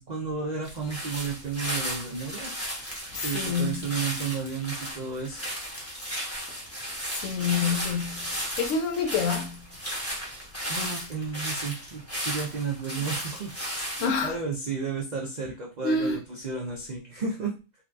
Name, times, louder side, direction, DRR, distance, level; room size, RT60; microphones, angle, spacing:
voice 1, 0.0-2.6 3.2-5.4 10.7-13.5 13.9-17.5, right 5 dB, 70° right, 0.4 m, -32 dB
sound 1, 0.6-14.1, equal, 15° left, 0.7 m, -35 dB
voice 2, 3.1-3.9 7.1-9.7 14.0-14.4 15.8-16.2, left 5 dB, 70° left, 0.9 m, -28 dB
3.7 x 2.3 x 2.5 m
omnidirectional pair, 1.5 m